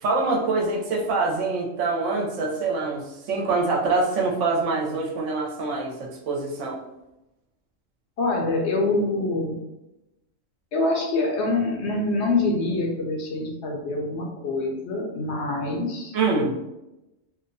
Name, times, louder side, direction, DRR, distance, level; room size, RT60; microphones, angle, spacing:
voice 1, 0.0-6.8 16.1-16.5, right 3 dB, 70° right, -1 dB, 0.9 m, -25 dB
voice 2, 8.2-9.6 10.7-16.7, left 2 dB, 65° left, -1 dB, 0.8 m, -25 dB
2.8 x 2.1 x 2.5 m, 0.95 s
omnidirectional pair, 1.4 m